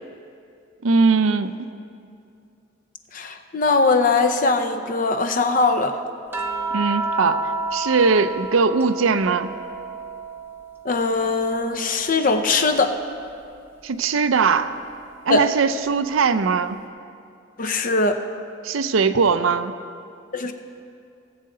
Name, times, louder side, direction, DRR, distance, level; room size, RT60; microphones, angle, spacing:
voice 1, 0.8-1.5 6.7-9.5 13.8-14.8 15.3-16.8 18.6-19.7, right 4 dB, 90° right, 11 dB, 0.5 m, -20 dB
voice 2, 3.1-6.0 10.8-13.0 15.3-15.4 17.6-18.2 20.3-20.5, left 3 dB, 40° left, 7 dB, 0.6 m, -21 dB
sound 1, 6.3-10.8 11.2-12.8 14.3-14.5, right 2 dB, 10° right, 0.7 m, -31 dB
18.5 x 7.7 x 3.8 m, 2.4 s
head